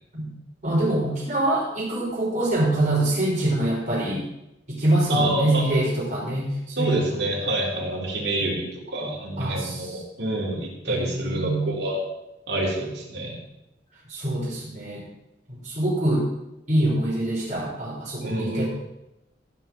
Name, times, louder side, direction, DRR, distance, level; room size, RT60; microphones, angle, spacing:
voice 1, 0.6-4.2 4.7-7.2 8.4-8.6 9.4-10.0 10.9-11.7 14.1-15.0 15.5-16.3 16.7-18.7, right 1 dB, 40° right, -6 dB, 4.9 m, -25 dB
voice 2, 5.1-5.6 6.8-12.0 12.5-13.4 18.2-18.7, right 1 dB, 65° right, -3 dB, 3.8 m, -27 dB
15.0 x 5.4 x 7.6 m, 0.90 s
head